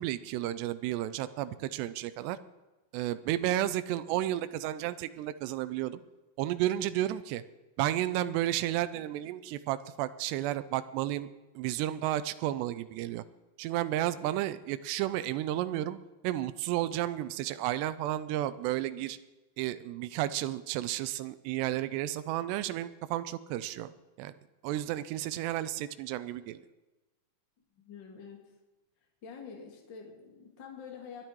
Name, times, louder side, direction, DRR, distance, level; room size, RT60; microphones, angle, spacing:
voice 1, 0.0-2.4 2.9-6.0 6.4-7.4 7.8-11.3 11.6-13.2 13.6-19.2 19.6-23.9 24.2-24.3 24.6-26.6, right 13 dB, 90° right, 13 dB, 2.8 m, -32 dB
voice 2, 27.8-28.5 29.2-31.2, left 6 dB, 30° left, 1 dB, 2.5 m, -47 dB
22.0 x 10.5 x 4.6 m, 1.1 s
omnidirectional pair, 4.8 m